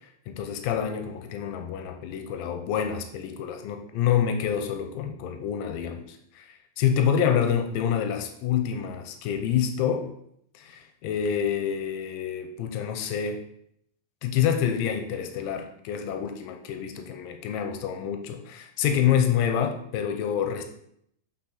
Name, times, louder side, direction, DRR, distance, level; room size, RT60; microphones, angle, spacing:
voice 1, 0.3-10.1 10.6-13.4 14.2-20.6, left 8 dB, 90° left, 6 dB, 2.3 m, -27 dB
8.9 x 3.8 x 3.9 m, 0.72 s
omnidirectional pair, 3.9 m